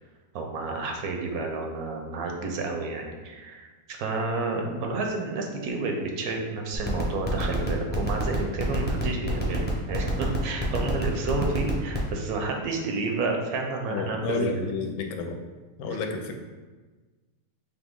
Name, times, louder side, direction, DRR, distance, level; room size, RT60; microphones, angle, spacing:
voice 1, 0.3-14.7 15.9-16.0, right 3 dB, 90° right, 2 dB, 1.2 m, -30 dB
sound 1, 6.7-12.1, equal, 15° left, 0.4 m, -29 dB
voice 2, 13.9-15.4 15.8-16.4, left 4 dB, 90° left, 4 dB, 1.1 m, -30 dB
4.2 x 2.9 x 3.6 m, 1.3 s
omnidirectional pair, 1.5 m